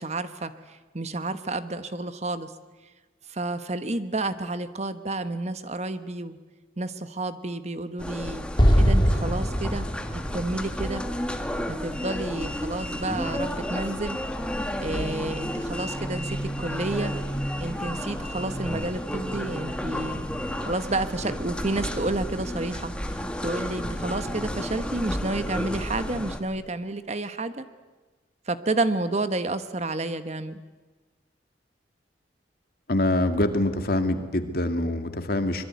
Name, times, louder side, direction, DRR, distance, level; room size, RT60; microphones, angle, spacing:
voice 1, 0.0-2.5 3.3-6.4 6.8-8.5 8.8-11.0 11.7-14.2 14.8-17.2 17.6-20.2 20.6-27.7 28.5-30.6, right 2 dB, 40° right, 11 dB, 1.2 m, -30 dB
sound 1, 8.0-26.4, equal, 5° left, 1.7 m, -32 dB
Explosion, 8.6-11.9, equal, 25° left, 2.3 m, -23 dB
voice 2, 32.9-35.7, left 1 dB, 55° left, 7 dB, 2.2 m, -25 dB
25.0 x 22.0 x 9.5 m, 1.3 s
head